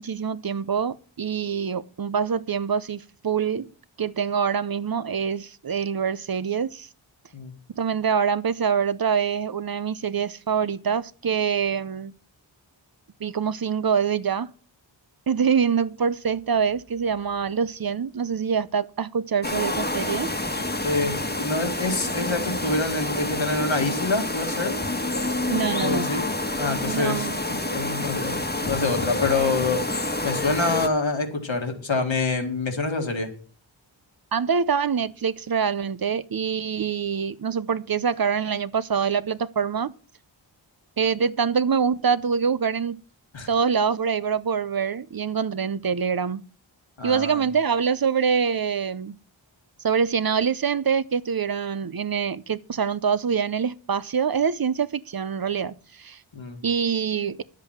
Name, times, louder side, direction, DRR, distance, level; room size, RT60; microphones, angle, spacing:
voice 1, 0.0-3.7 4.0-6.9 7.8-12.1 13.2-14.5 15.3-20.3 25.5-26.1 26.8-27.4 34.3-39.9 41.0-43.0 43.5-46.4 47.0-49.2 49.8-56.2 56.6-57.4, right 6 dB, 50° right, 0.6 m, -25 dB
sound 1, 19.4-30.9, left 2 dB, 20° left, 1.3 m, -28 dB
voice 2, 20.8-24.9 25.8-26.3 26.6-28.3 28.6-33.3 43.3-43.5 47.0-47.4 56.3-56.6, left 3 dB, 70° left, 2.1 m, -26 dB
10.5 x 7.5 x 5.8 m
wide cardioid pair, 45°, 47 cm